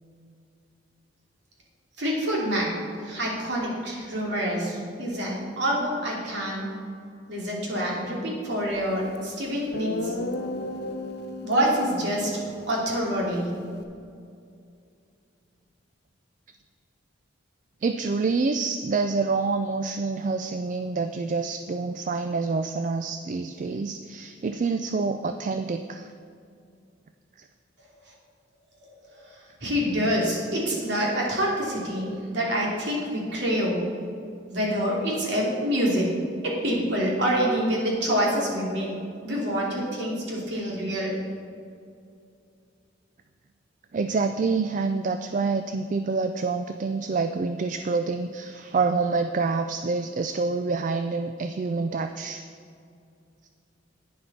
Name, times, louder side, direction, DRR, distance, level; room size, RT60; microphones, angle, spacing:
voice 1, 2.0-2.8 3.0-6.8 7.3-10.1 11.4-12.4 12.7-13.6 29.1-33.8 34.5-36.1 36.4-38.9 39.2-41.2, equal, 60° right, -3 dB, 2.7 m, -26 dB
Guitar, 9.1-9.2 9.7-13.8, left 1 dB, 55° left, 0.9 m, -35 dB
voice 2, 17.8-26.1 43.9-52.4, right 4 dB, 40° right, 8 dB, 0.3 m, -27 dB
11.0 x 9.4 x 4.2 m, 2.4 s
head